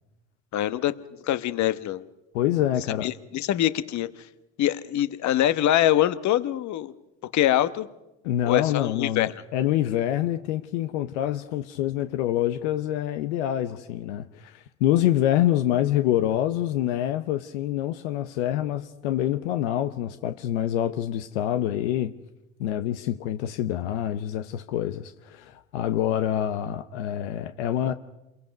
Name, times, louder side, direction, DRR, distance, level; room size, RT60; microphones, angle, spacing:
voice 1, 0.5-0.9 1.2-2.0 3.0-4.1 4.6-6.9 7.3-7.9 8.4-9.3, left 12 dB, 55° left, 1.2 m, -24 dB
voice 2, 2.3-3.1 8.2-22.1 22.6-27.9, left 12 dB, 80° left, 0.9 m, -26 dB
28.0 x 22.5 x 5.3 m
hypercardioid pair, 70°, 35 cm